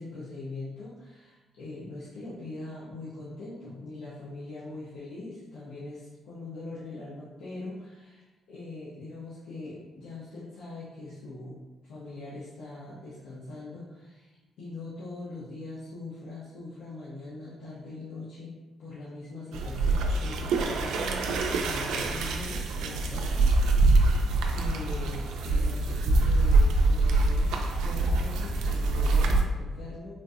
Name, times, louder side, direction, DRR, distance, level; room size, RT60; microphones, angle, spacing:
voice 1, 0.0-14.3 14.6-18.5 18.8-24.2 24.5-27.5 27.8-30.1, left 2 dB, 85° left, -9 dB, 0.8 m, -41 dB
sound 1, 19.5-29.4, right 2 dB, 85° right, 0.3 m, -24 dB
3.7 x 2.4 x 2.6 m, 1.2 s
cardioid pair, 90°, 0 cm